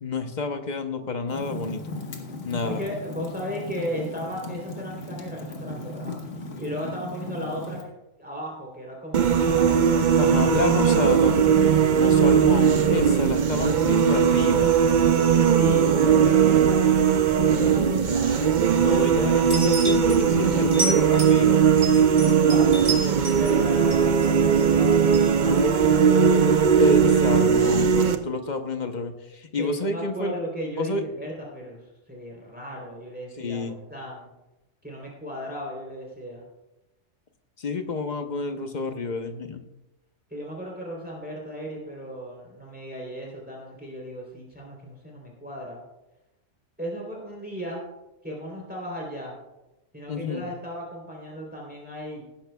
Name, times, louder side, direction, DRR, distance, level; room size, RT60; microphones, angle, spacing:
voice 1, 0.0-1.8 2.4-2.8 10.2-14.8 18.7-21.7 26.8-30.3 30.7-31.0 33.4-33.7 37.6-39.6 50.1-50.4, left 3 dB, 40° left, 6 dB, 0.9 m, -29 dB
Fire, 1.3-7.8, left 2 dB, 65° left, 1.7 m, -37 dB
voice 2, 2.6-6.2 6.6-7.8 8.2-9.9 13.0-13.4 15.3-18.4 22.2-22.9 23.3-26.3 29.6-33.6 33.9-34.3 34.8-36.4 40.3-45.8 46.8-47.8 48.2-49.3 49.9-52.2, equal, 5° right, -3 dB, 3.3 m, -36 dB
sound 1, 9.1-28.2, right 7 dB, 45° right, 0.6 m, -19 dB
sound 2, 19.5-20.2 20.7-21.4 21.8-23.5 23.9-24.6 25.1-25.3, right 2 dB, 75° right, 3.7 m, -30 dB
19.0 x 10.5 x 2.3 m, 0.98 s
omnidirectional pair, 1.4 m